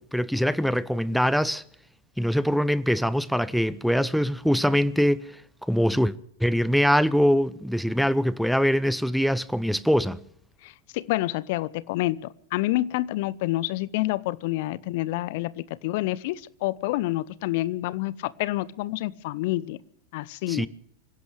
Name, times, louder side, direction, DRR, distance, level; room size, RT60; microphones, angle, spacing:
voice 1, 0.0-1.6 2.2-5.2 5.7-6.1 6.4-10.2 20.5-20.7, equal, ahead, 0.8 m, -23 dB
voice 2, 10.6-19.8 20.1-20.7, left 17 dB, 50° left, 0.7 m, -28 dB
25.0 x 16.5 x 3.4 m
figure-of-eight pair, 90°, 0 cm